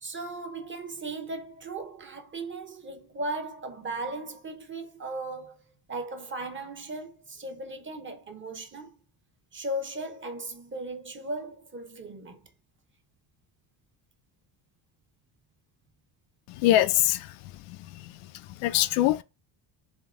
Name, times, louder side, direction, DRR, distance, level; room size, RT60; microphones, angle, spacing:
voice 1, 0.0-5.6 5.9-8.9 9.5-12.4, right 2 dB, 25° right, 0.7 m, -37 dB
voice 2, 16.6-17.2 18.6-19.2, left 14 dB, 85° left, 0.6 m, -22 dB
3.7 x 2.8 x 3.6 m
cardioid pair, 115°, 49 cm